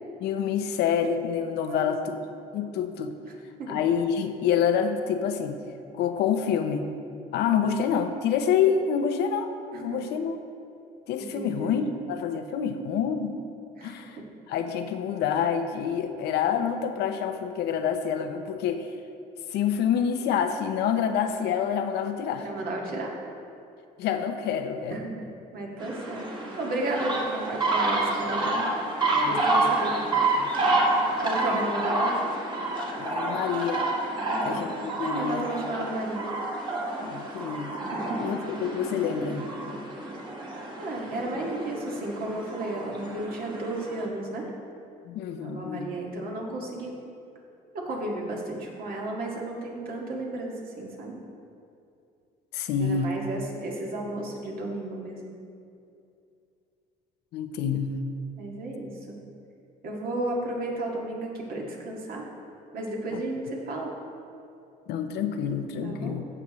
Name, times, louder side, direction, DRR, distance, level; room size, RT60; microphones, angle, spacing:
voice 1, 0.2-2.2 2.5-3.2 3.7-5.6 5.9-6.9 7.3-9.5 9.8-10.4 11.1-13.4 13.8-14.2 14.5-18.9 19.5-22.5 24.0-25.0 29.1-29.7 30.0-30.5 31.5-31.6 33.0-33.9 34.4-35.5 37.0-37.7 38.2-39.5 45.1-45.9 52.5-53.2 57.3-58.0 63.1-63.2 64.9-66.3, left 7 dB, 80° left, 7 dB, 0.7 m, -27 dB
voice 2, 1.7-2.1 3.6-3.8 9.7-10.0 11.2-11.8 13.8-14.0 22.3-23.2 24.9-25.1 25.5-26.3 26.6-28.7 29.2-30.0 31.2-32.2 34.2-34.7 35.0-36.2 37.9-38.2 40.8-44.5 45.4-47.0 47.7-51.2 52.8-55.3 58.4-59.2 59.8-62.3 62.7-63.9 65.8-66.2, right 1 dB, 60° right, -2 dB, 1.9 m, -33 dB
sound 1, 25.8-44.1, right 2 dB, 25° right, 1.6 m, -29 dB
15.5 x 6.0 x 3.1 m, 2.6 s
cardioid pair, 110°, 17 cm